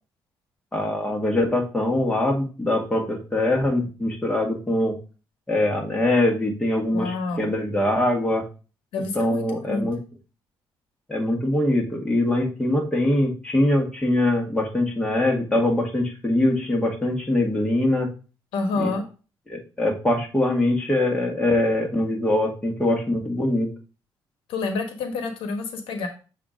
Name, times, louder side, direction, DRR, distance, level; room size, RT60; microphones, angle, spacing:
voice 1, 0.7-5.0 5.5-8.4 9.2-10.0 11.1-18.1 18.8-18.9 19.5-23.7, left 1 dB, 10° left, 0 dB, 2.1 m, -23 dB
voice 2, 6.9-7.5 8.9-9.9 18.5-19.0 24.5-26.1, left 3 dB, 85° left, 6 dB, 1.2 m, -28 dB
7.1 x 3.0 x 5.2 m, 0.34 s
cardioid pair, 85°, 9 cm